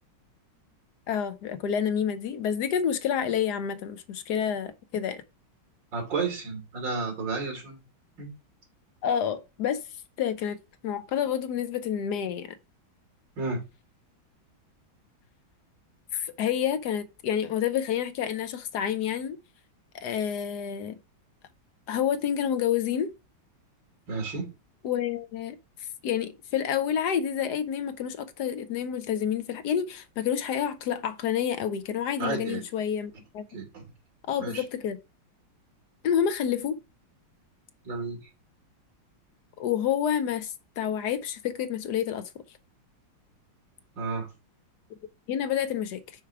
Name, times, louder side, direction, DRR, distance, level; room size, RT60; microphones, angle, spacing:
voice 1, 1.1-5.2 9.0-9.8 10.2-10.6 10.8-12.5 16.1-19.4 19.9-21.0 21.9-23.1 24.8-25.6 26.0-33.4 34.3-35.0 36.0-36.8 39.6-42.3 45.3-46.0, left 9 dB, 65° left, 1.1 m, -28 dB
voice 2, 5.9-7.8 8.2-8.3 13.4-13.6 24.1-24.5 32.2-32.6 33.5-33.9 34.4-34.6 37.8-38.2 44.0-44.3, right 4 dB, 60° right, 3.4 m, -32 dB
6.0 x 4.6 x 4.6 m
omnidirectional pair, 2.2 m